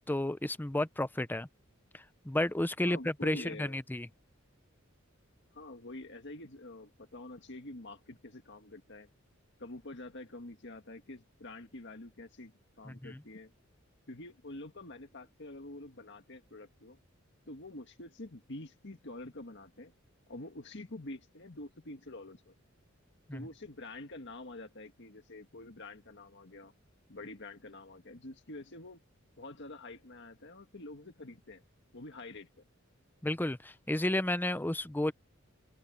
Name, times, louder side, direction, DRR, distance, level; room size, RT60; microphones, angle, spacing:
voice 1, 0.1-1.5 1.9-4.1 12.9-13.2 23.3-23.5 33.2-35.1, left 1 dB, 10° left, 0.6 m, -32 dB
voice 2, 2.9-3.8 5.5-9.1 9.6-13.5 14.1-17.0 17.5-19.9 20.3-22.5 23.3-26.7 27.1-29.0 29.4-31.6 31.9-32.6, left 2 dB, 60° left, 1.8 m, -47 dB
head